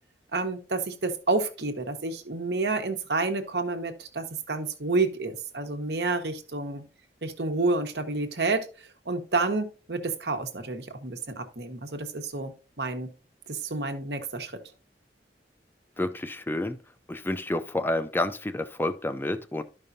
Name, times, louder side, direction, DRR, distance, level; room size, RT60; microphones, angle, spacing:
voice 1, 0.3-6.8 7.2-8.7 9.1-13.1 13.5-14.6, right 3 dB, 65° right, 1.2 m, -29 dB
voice 2, 16.0-16.8 17.1-19.6, left 1 dB, 10° left, 0.4 m, -29 dB
12.0 x 5.3 x 2.7 m
head